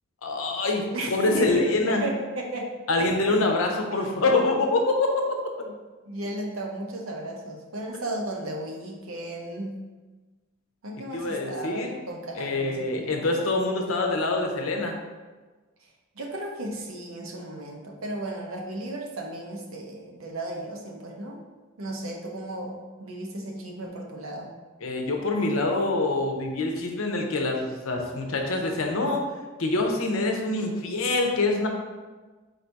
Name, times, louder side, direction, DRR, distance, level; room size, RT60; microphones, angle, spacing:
voice 1, 0.2-2.0 2.9-5.4 11.1-11.9 12.4-15.0 24.8-29.2 29.6-31.7, left 2 dB, 80° left, 2 dB, 0.7 m, -25 dB
voice 2, 0.9-3.1 3.9-4.0 6.0-9.8 10.8-13.3 16.1-21.4 21.8-24.5, right 1 dB, 75° right, 1 dB, 0.8 m, -35 dB
4.0 x 2.7 x 4.5 m, 1.3 s
head